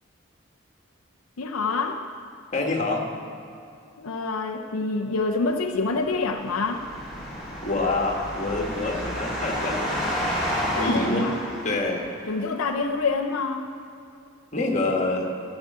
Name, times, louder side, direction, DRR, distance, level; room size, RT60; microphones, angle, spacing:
voice 1, 1.4-2.0 4.0-6.9 10.7-11.4 12.3-13.7, left 3 dB, 85° left, 3 dB, 0.7 m, -26 dB
voice 2, 2.5-3.0 7.6-10.1 10.7-11.3 11.6-12.0 14.5-15.3, left 2 dB, 35° left, 0 dB, 1.6 m, -26 dB
sound 1, 6.0-12.3, equal, ahead, 2.5 m, -31 dB
14.5 x 6.2 x 7.4 m, 2.5 s
head